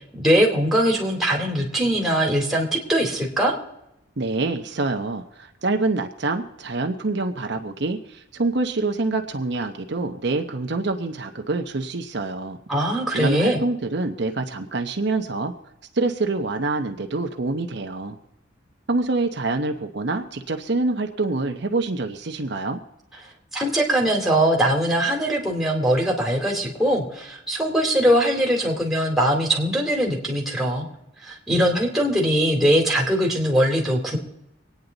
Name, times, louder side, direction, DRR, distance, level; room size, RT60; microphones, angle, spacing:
voice 1, 0.1-3.5 12.7-13.6 23.5-30.9 31.2-34.2, right 1 dB, ahead, -1 dB, 2.5 m, -21 dB
voice 2, 4.2-12.6 13.1-15.5 15.9-18.2 18.9-22.8, right 3 dB, 60° right, 4 dB, 0.9 m, -26 dB
25.5 x 9.4 x 4.0 m, 0.86 s
head